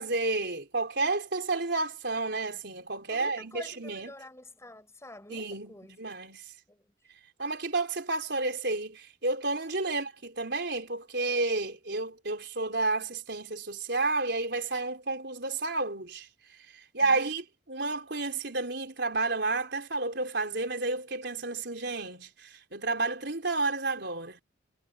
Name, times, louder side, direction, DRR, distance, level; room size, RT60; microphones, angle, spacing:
voice 1, 0.0-4.1 5.3-6.5 7.4-16.3 16.7-24.4, right 3 dB, 60° right, 4.6 m, -31 dB
voice 2, 3.1-5.9 6.7-6.9 9.8-9.9 17.0-17.3, left 1 dB, 15° left, 5.9 m, -48 dB
head